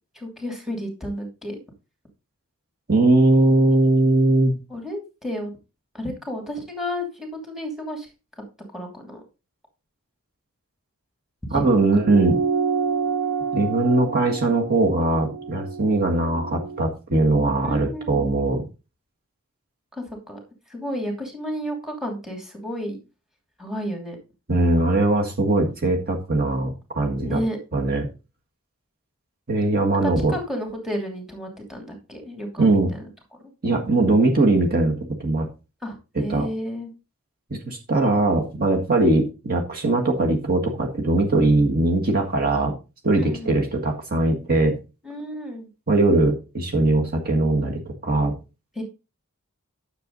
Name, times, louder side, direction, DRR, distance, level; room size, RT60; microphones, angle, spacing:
voice 1, 0.1-1.6 4.7-5.5 5.9-8.1 8.7-9.2 11.5-11.8 17.6-18.3 20.0-20.4 20.7-23.0 23.6-24.2 27.2-27.6 30.0-32.8 35.8-36.9 43.1-43.6 45.0-45.7 48.8-48.9, equal, ahead, 2 dB, 2.8 m, -31 dB
voice 2, 2.9-4.5 11.5-12.4 13.5-18.7 24.5-27.4 27.7-28.1 29.5-30.3 32.6-32.9 33.6-35.5 36.2-36.5 37.5-42.7 43.0-44.8 45.9-48.3, right 2 dB, 45° right, 1 dB, 1.9 m, -20 dB
sound 1, 12.0-16.8, right 5 dB, 60° right, 1.2 m, -28 dB
10.0 x 7.0 x 4.0 m, 0.30 s
head